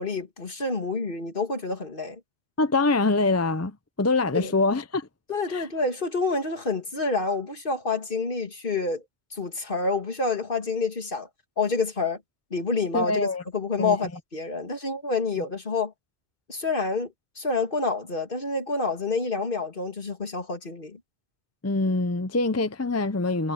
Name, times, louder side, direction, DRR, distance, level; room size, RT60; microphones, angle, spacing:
voice 1, 0.0-2.2 4.3-4.6 5.3-9.0 9.3-11.3 11.6-12.2 12.5-15.9 16.5-21.0, left 3 dB, 50° left, 2.4 m, -28 dB
voice 2, 2.6-5.1 5.5-5.7 12.9-13.4 13.8-14.0 21.6-23.5, left 3 dB, 20° left, 0.5 m, -24 dB
omnidirectional pair, 1.1 m